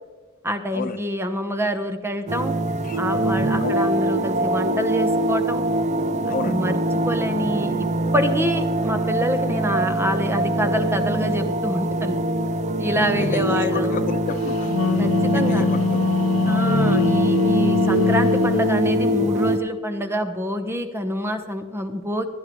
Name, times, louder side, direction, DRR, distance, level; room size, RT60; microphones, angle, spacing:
voice 1, 0.4-2.5 3.0-5.6 6.2-6.8 7.0-7.9 8.1-12.2 12.8-14.0 15.0-15.7 16.5-22.3, equal, 10° right, 8 dB, 0.9 m, -26 dB
sound 1, 2.3-19.6, right 1 dB, 35° right, 0.5 m, -23 dB
voice 2, 13.2-14.8 15.3-16.1, left 5 dB, 40° left, 11 dB, 0.4 m, -30 dB
Wind instrument woodwind instrument, 14.5-18.7, left 4 dB, 70° left, 0.7 m, -23 dB
16.0 x 11.5 x 3.1 m, 1.3 s
head